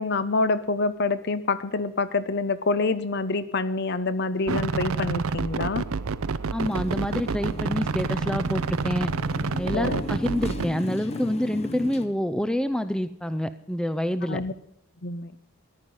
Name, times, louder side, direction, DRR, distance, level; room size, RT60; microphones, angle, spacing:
voice 1, 0.0-5.8 9.7-10.0 14.3-14.5 15.0-15.3, left 3 dB, 50° left, 15 dB, 0.8 m, -26 dB
sound 1, 4.5-10.7, right 4 dB, 80° right, 0.6 m, -28 dB
voice 2, 6.5-9.1 9.6-14.4, equal, 5° left, 13 dB, 0.4 m, -27 dB
Motorcycle, 6.6-12.1, left 2 dB, 30° left, 1.0 m, -37 dB
14.5 x 10.5 x 5.4 m, 0.80 s
head